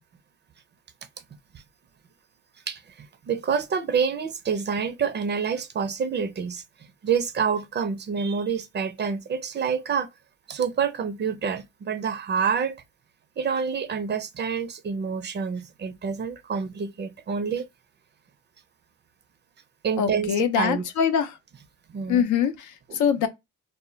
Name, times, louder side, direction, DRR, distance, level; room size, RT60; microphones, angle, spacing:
voice 1, 2.7-6.6 7.0-10.1 10.5-12.8 13.4-17.7 19.8-20.8 21.9-22.2 22.9-23.0, right 6 dB, 35° right, 0.4 m, -27 dB
voice 2, 20.0-21.4 22.1-23.3, left 8 dB, 80° left, 0.5 m, -24 dB
2.1 x 2.0 x 3.7 m
cardioid pair, 90°, 30 cm